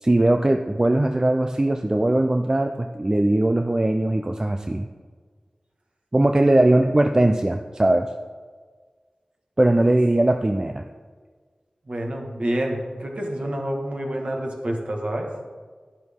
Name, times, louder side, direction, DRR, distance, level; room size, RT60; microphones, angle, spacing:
voice 1, 0.0-4.9 6.1-8.1 9.6-10.8, right 1 dB, 25° right, 5 dB, 0.5 m, -20 dB
voice 2, 11.9-15.3, right 1 dB, 55° right, 1 dB, 1.7 m, -28 dB
11.0 x 10.5 x 3.7 m, 1.5 s
wide cardioid pair, 75°, 2 cm